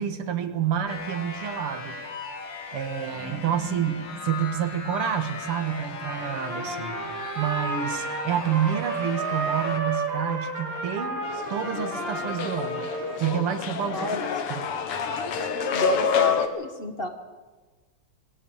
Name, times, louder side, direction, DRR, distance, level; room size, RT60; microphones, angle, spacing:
voice 1, 0.0-2.0 2.4-7.0 7.4-11.2 11.5-12.9 13.2-14.2 14.5-14.6, right 9 dB, 85° right, 9 dB, 2.5 m, -28 dB
sound 1, 0.9-9.8, left 4 dB, 55° left, 2.6 m, -37 dB
Trumpet, 6.0-13.4, right 3 dB, 55° right, 4.0 m, -32 dB
sound 2, 11.2-16.5, left 7 dB, 90° left, 2.4 m, -28 dB
voice 2, 13.9-14.2 15.7-17.1, right 2 dB, 30° left, 6 dB, 1.4 m, -30 dB
20.0 x 16.0 x 8.9 m, 1.3 s
omnidirectional pair, 2.4 m